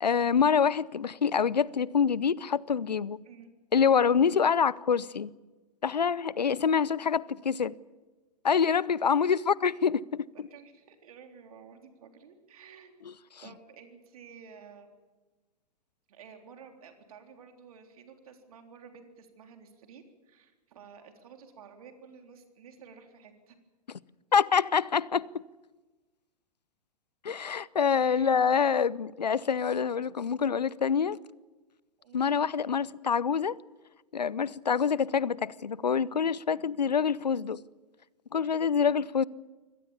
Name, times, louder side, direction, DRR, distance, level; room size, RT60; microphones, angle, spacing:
voice 1, 0.0-3.2 3.7-5.3 5.8-7.7 8.4-10.3 24.3-25.3 27.2-31.2 32.1-33.6 34.1-37.6 38.3-39.2, left 6 dB, 80° left, 0.6 m, -26 dB
voice 2, 10.5-12.9 13.4-14.9 16.1-23.6 28.0-28.6 32.0-32.4 36.6-36.7, right 6 dB, 60° right, 3.7 m, -52 dB
24.0 x 18.0 x 7.2 m
figure-of-eight pair, 105°, 21 cm